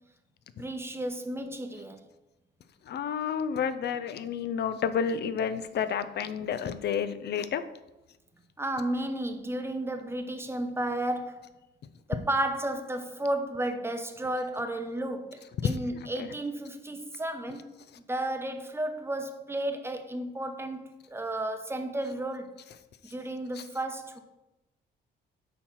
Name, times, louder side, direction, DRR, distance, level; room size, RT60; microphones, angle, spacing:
voice 1, 0.6-2.0 8.6-11.5 12.1-17.7 18.1-22.5 23.1-24.2, right 1 dB, 10° right, 0.8 m, -33 dB
voice 2, 2.9-7.6 15.6-15.7 16.2-16.3, left 7 dB, 60° left, 0.6 m, -30 dB
8.3 x 3.1 x 5.6 m
cardioid pair, 90°, 20 cm